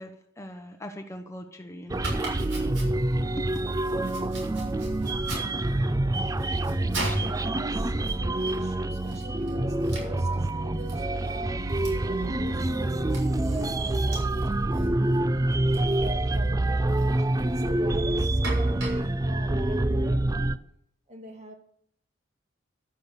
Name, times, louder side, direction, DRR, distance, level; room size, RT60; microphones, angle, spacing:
voice 1, 0.0-2.2 3.4-3.5, equal, 15° left, 1.0 m, -40 dB
sound 1, 1.9-20.6, right 1 dB, 15° right, 0.4 m, -26 dB
Domestic sounds home sounds, 1.9-20.4, right 2 dB, 70° right, 6.8 m, -42 dB
voice 2, 7.1-11.8 12.0-15.0 15.9-20.6 21.1-21.5, equal, 35° right, 2.3 m, -44 dB
12.5 x 10.5 x 6.7 m
head